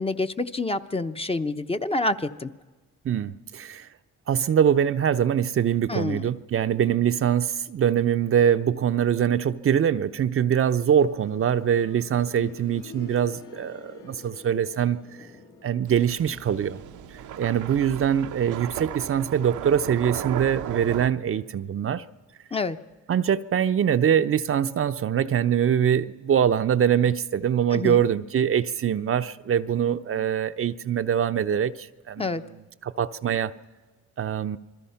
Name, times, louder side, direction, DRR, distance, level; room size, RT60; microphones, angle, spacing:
voice 1, 0.0-2.5 5.9-6.3 22.5-22.8 27.7-28.0 32.2-32.4, left 2 dB, 20° left, 0.9 m, -27 dB
voice 2, 3.0-3.9 4.3-15.0 15.6-16.8 17.4-22.0 23.1-33.5 34.2-34.6, right 9 dB, 45° right, 0.7 m, -23 dB
sound 1, 10.9-21.6 23.0-23.1, left 4 dB, 80° left, 2.7 m, -50 dB
sound 2, 15.9-21.1, right 11 dB, 80° right, 0.9 m, -36 dB
28.0 x 21.0 x 5.8 m
cardioid pair, 90°, 30 cm